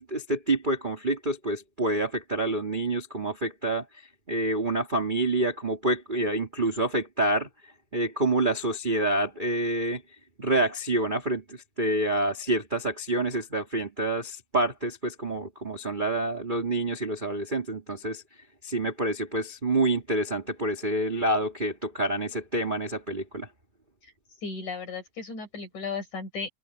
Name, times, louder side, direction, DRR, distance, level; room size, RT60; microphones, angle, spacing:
voice 1, 0.0-3.8 4.3-7.5 7.9-10.0 10.4-18.2 18.6-23.5, right 2 dB, 15° right, 2.1 m, -27 dB
voice 2, 24.4-26.5, left 4 dB, 50° left, 6.3 m, -35 dB
omnidirectional pair, 4.4 m